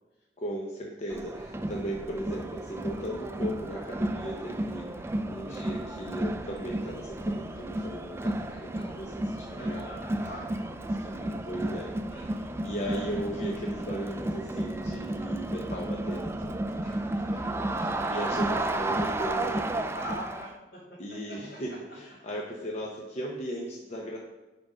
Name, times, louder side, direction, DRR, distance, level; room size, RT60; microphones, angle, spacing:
voice 1, 0.4-9.9 10.9-12.0 12.6-19.7 21.0-24.2, right 1 dB, 40° left, -2 dB, 0.9 m, -37 dB
Crowd, 1.1-20.5, right 1 dB, 15° right, 0.4 m, -33 dB
voice 2, 9.6-11.3 12.1-12.7 18.4-18.8 19.9-20.8 21.5-21.6, equal, 65° left, -10 dB, 2.7 m, -43 dB
10.5 x 3.8 x 5.0 m, 1.1 s
head